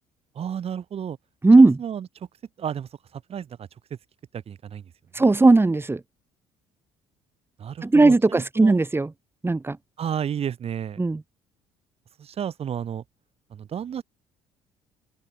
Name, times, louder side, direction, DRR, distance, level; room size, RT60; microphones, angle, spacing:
voice 1, 0.3-1.2 1.6-2.1 2.6-4.0 4.3-4.9 5.2-5.3 7.6-8.8 10.0-11.0 12.2-13.0 13.5-14.0, right 8 dB, 50° right, 4.6 m, -32 dB
voice 2, 1.4-1.8 5.2-6.0 7.8-9.1 9.4-9.8 11.0-11.2, right 3 dB, 20° right, 2.6 m, -17 dB
open air
supercardioid pair, 65°, 13 cm